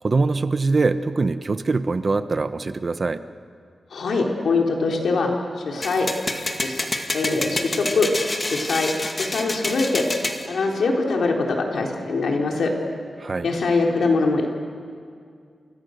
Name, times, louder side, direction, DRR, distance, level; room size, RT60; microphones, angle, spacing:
voice 1, 0.0-3.2 13.2-13.5, right 3 dB, 40° right, 11 dB, 0.9 m, -23 dB
voice 2, 3.9-5.3 5.6-6.1 6.6-6.8 7.1-8.1 8.5-8.9 9.2-10.0 10.5-12.7 13.4-14.5, left 3 dB, 85° left, 0 dB, 3.9 m, -22 dB
sound 1, 5.8-10.4, left 2 dB, 25° left, 2.2 m, -28 dB
29.5 x 28.5 x 6.6 m, 2.2 s
wide cardioid pair, 150°, 0 cm